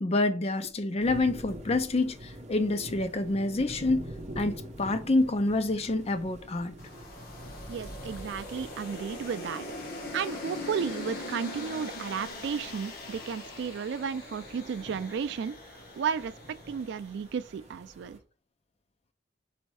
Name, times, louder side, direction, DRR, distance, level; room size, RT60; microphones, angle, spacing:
voice 1, 0.0-4.1 4.4-6.8, left 2 dB, 35° left, 0.5 m, -27 dB
sound 1, 1.0-18.2, right 1 dB, 35° right, 0.8 m, -46 dB
sound 2, 6.8-17.1, left 2 dB, 55° left, 1.2 m, -42 dB
voice 2, 7.7-9.6 10.1-15.6 16.0-18.2, right 6 dB, 65° right, 0.3 m, -33 dB
4.2 x 2.6 x 4.7 m
head